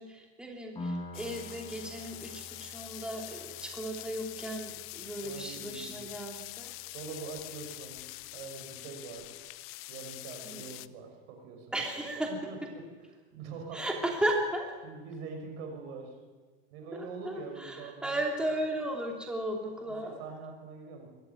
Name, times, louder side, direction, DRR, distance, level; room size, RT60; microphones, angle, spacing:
voice 1, 0.0-6.7 10.4-10.6 11.7-12.3 13.7-14.7 16.9-20.2, right 1 dB, 5° right, 1 dB, 2.8 m, -35 dB
Piano, 0.8-8.1, left 1 dB, 15° left, 6.0 m, -47 dB
sound 1, 1.1-10.9, left 19 dB, 45° left, 0.7 m, -45 dB
voice 2, 5.2-6.1 6.9-8.0 8.3-9.3 9.9-11.8 12.3-12.8 13.3-14.1 14.8-16.2 16.7-18.2 18.5-18.6 19.7-21.1, right 4 dB, 65° right, 3 dB, 6.0 m, -44 dB
21.5 x 14.0 x 9.4 m, 1.4 s
supercardioid pair, 135°, 32 cm